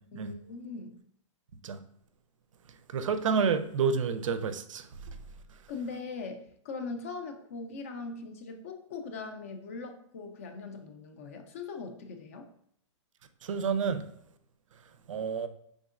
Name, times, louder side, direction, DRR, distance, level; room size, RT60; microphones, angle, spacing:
voice 1, 0.1-1.0 5.7-12.5, left 4 dB, 30° left, 5 dB, 0.3 m, -40 dB
voice 2, 2.9-4.9 13.4-14.1 15.1-15.5, right 6 dB, 85° right, 10 dB, 0.5 m, -29 dB
5.2 x 3.6 x 2.4 m, 0.68 s
hypercardioid pair, 175°, 16 cm